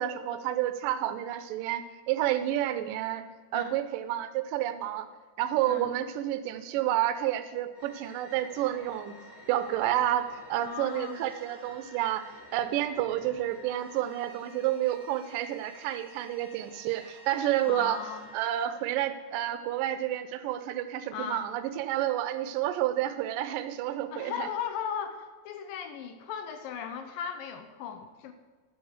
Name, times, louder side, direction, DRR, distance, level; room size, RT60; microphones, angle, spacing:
voice 1, 0.0-3.2 3.5-5.1 5.4-9.1 9.5-12.3 12.5-18.0 18.3-24.5, right 12 dB, 75° right, 10 dB, 2.2 m, -30 dB
sound 1, 7.7-20.3, left 1 dB, 20° left, 2.4 m, -52 dB
voice 2, 10.6-11.2 17.6-18.3 21.1-21.5 24.1-28.3, left 8 dB, 75° left, 8 dB, 2.3 m, -37 dB
10.5 x 8.3 x 6.5 m, 1.5 s
omnidirectional pair, 4.4 m